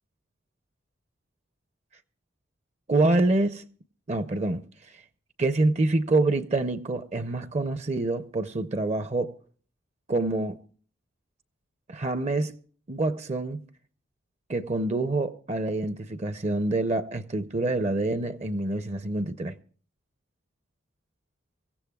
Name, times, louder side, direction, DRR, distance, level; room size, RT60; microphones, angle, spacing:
voice 1, 2.9-3.6 4.1-4.6 4.9-5.0 5.4-9.4 10.1-10.6 11.9-12.6 12.9-13.6 14.5-19.5, right 2 dB, 30° right, 0.5 m, -26 dB
24.5 x 15.5 x 2.3 m
head